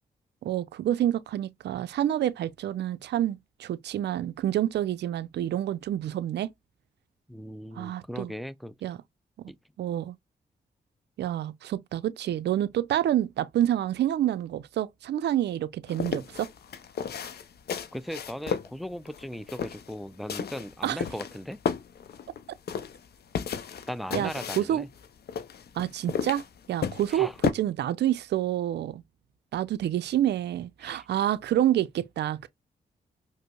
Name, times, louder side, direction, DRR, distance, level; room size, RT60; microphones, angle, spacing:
voice 1, 0.4-6.5 7.8-8.3 8.8-9.0 9.8-10.2 11.2-16.5 20.8-21.0 24.1-24.3 24.6-24.8 25.8-26.4 26.7-27.3 27.5-29.0 29.5-32.5, right 12 dB, 65° right, 0.4 m, -28 dB
voice 2, 7.3-8.7 9.5-9.6 17.9-21.6 23.9-24.9 27.1-27.4 30.8-31.1, equal, ahead, 0.4 m, -38 dB
sound 1, 15.9-27.5, left 7 dB, 60° left, 0.5 m, -34 dB
5.0 x 2.0 x 2.2 m
supercardioid pair, 45°, 19 cm